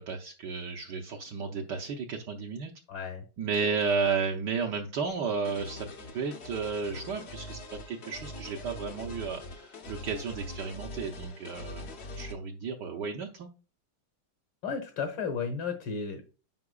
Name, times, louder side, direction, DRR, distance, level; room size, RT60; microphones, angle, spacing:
voice 1, 0.0-2.7 3.4-5.9 6.1-13.5, right 5 dB, 65° right, 2 dB, 1.2 m, -33 dB
voice 2, 2.9-3.2 14.6-16.2, left 5 dB, 70° left, 4 dB, 1.9 m, -33 dB
sound 1, 5.4-12.3, left 2 dB, 55° left, 0.7 m, -43 dB
9.6 x 5.8 x 2.3 m, 0.35 s
omnidirectional pair, 2.3 m